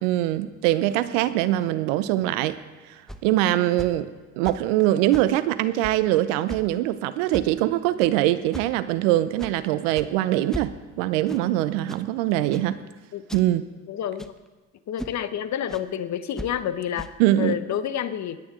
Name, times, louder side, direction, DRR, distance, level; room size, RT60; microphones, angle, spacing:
voice 1, 0.0-2.6 2.9-4.1 4.4-12.8 13.3-13.7 17.2-17.5, right 14 dB, 70° right, 14 dB, 0.8 m, -23 dB
sound 1, 2.5-2.6 3.1-3.3 3.8-4.0 4.4-4.7 5.1-5.3 5.8-6.0 6.5-6.7 7.3-7.6 8.0-8.1 8.5-8.8 9.4-9.6 9.9-10.1 10.5-10.9 11.3-11.5 11.9-12.1 12.5-12.7 13.3-13.5 14.2-14.5 15.0-15.2 15.7-15.9 16.4-16.5 17.0-17.1, equal, ahead, 0.9 m, -37 dB
voice 2, 13.9-14.4 14.9-18.4, left 9 dB, 45° left, 13 dB, 1.0 m, -29 dB
23.0 x 9.7 x 3.7 m, 1.3 s
hypercardioid pair, 60°, 38 cm